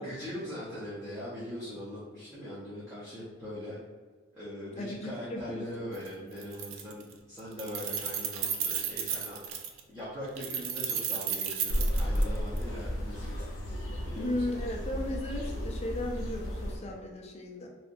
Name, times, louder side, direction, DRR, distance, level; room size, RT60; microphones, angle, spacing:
voice 1, 0.0-3.8 4.3-9.4 9.9-13.5 14.1-14.4, left 1 dB, 15° right, -11 dB, 0.6 m, -41 dB
voice 2, 4.7-5.9 14.1-17.7, left 1 dB, 30° left, 1 dB, 0.3 m, -36 dB
Keys jangling, 5.9-6.1 6.4-7.1 7.4-9.8 10.4-12.6, right 7 dB, 75° right, 0.3 m, -33 dB
sound 1, 11.7-16.8, equal, 75° left, 0.8 m, -33 dB
2.7 x 2.5 x 2.5 m, 1.4 s
head